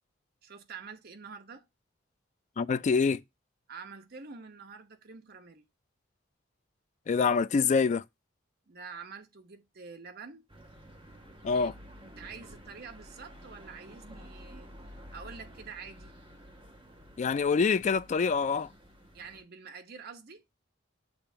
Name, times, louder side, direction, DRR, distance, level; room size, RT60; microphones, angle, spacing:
voice 1, 0.4-1.7 3.7-5.6 8.7-10.5 11.5-16.1 19.1-20.4, right 5 dB, 55° right, 1.0 m, -47 dB
voice 2, 2.6-3.2 7.1-8.0 11.4-11.7 17.2-18.7, left 5 dB, 40° left, 0.3 m, -25 dB
sound 1, 10.5-19.4, equal, 25° right, 1.6 m, -51 dB
6.9 x 2.6 x 5.5 m
head